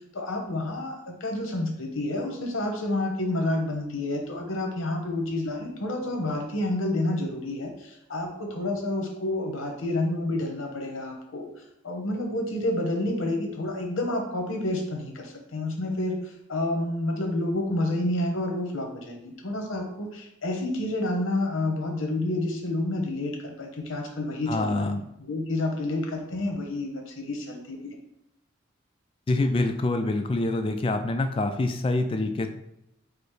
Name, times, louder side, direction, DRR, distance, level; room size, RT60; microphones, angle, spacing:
voice 1, 0.1-11.5 11.8-24.9 25.2-28.0, left 1 dB, 75° left, 1 dB, 1.0 m, -29 dB
voice 2, 24.5-25.0 29.3-32.5, left 2 dB, 25° left, 7 dB, 0.3 m, -26 dB
4.9 x 2.0 x 4.7 m, 0.83 s
head